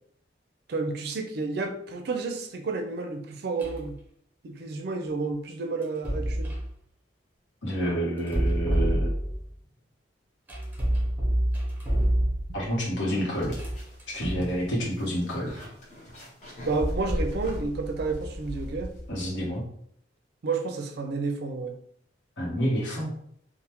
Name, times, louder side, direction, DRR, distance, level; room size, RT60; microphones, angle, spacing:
voice 1, 0.7-3.9 4.4-6.5 16.6-18.9 20.4-21.7, right 3 dB, 60° right, 5 dB, 0.4 m, -30 dB
sound 1, 3.6-3.9 5.8-6.7 8.2-9.5 10.5-12.7 13.4-14.5, equal, 10° right, 0.7 m, -27 dB
voice 2, 7.6-9.1 12.5-13.5 14.1-15.5 19.1-19.6 22.4-23.1, equal, 80° left, -5 dB, 0.8 m, -28 dB
sound 2, 12.6-12.7 13.1-19.4, equal, 40° left, 0.7 m, -36 dB
3.3 x 2.1 x 2.9 m, 0.67 s
head